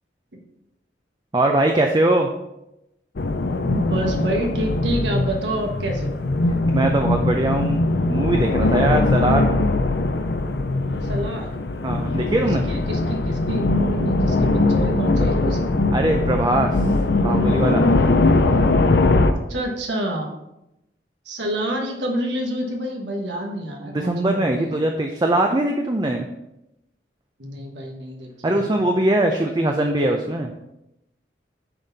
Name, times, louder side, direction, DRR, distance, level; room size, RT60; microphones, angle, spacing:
voice 1, 1.3-2.3 6.7-7.8 8.1-9.5 11.8-12.6 15.9-16.9 17.2-17.8 23.8-26.3 28.4-30.5, right 1 dB, 25° right, 3 dB, 0.5 m, -21 dB
sound 1, 3.2-19.3, left 2 dB, 65° left, 0.6 m, -21 dB
voice 2, 3.7-6.2 11.0-11.6 12.4-15.7 19.5-20.3 21.2-24.8 27.4-28.3 28.6-28.8, right 1 dB, 80° right, 1 dB, 1.3 m, -28 dB
9.7 x 4.2 x 4.0 m, 0.89 s
head